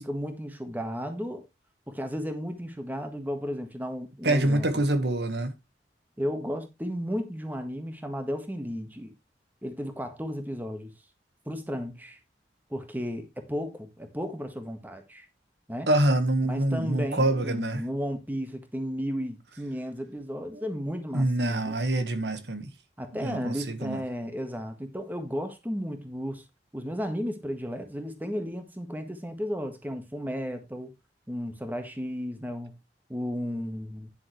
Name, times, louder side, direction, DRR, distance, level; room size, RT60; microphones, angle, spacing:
voice 1, 0.0-1.4 1.9-4.8 6.2-9.1 9.6-10.9 11.4-12.2 12.7-15.3 15.7-15.9 16.4-21.7 23.0-26.4 26.7-30.9 31.3-32.7 33.1-34.1, equal, 10° right, 1.6 m, -34 dB
voice 2, 4.2-5.5 15.9-17.8 20.5-20.6 21.1-22.7 23.1-24.0, right 1 dB, 75° right, 1.6 m, -26 dB
10.5 x 7.4 x 3.3 m
head